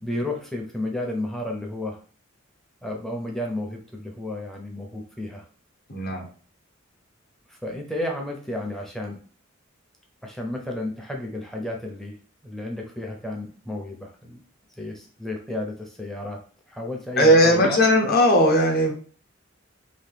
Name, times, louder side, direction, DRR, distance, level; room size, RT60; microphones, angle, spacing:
voice 1, 0.0-2.0 2.8-5.5 7.5-9.2 10.2-12.2 12.4-14.4 14.8-16.4 16.7-17.8, left 1 dB, ahead, 0 dB, 0.5 m, -32 dB
voice 2, 5.9-6.3 17.2-18.9, equal, 50° left, 1 dB, 0.8 m, -18 dB
2.8 x 2.2 x 3.3 m, 0.40 s
head